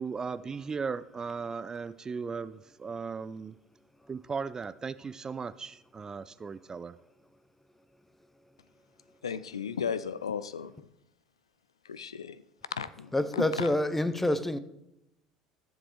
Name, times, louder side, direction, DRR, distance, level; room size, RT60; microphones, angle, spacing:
voice 1, 0.0-3.6 4.1-7.0, right 5 dB, 20° right, 0.3 m, -37 dB
voice 2, 9.2-10.7 11.9-12.4 12.7-13.7, left 7 dB, 80° left, 0.3 m, -35 dB
voice 3, 13.1-14.6, left 1 dB, 5° left, 0.6 m, -27 dB
14.5 x 7.3 x 3.1 m
figure-of-eight pair, 70°, 3 cm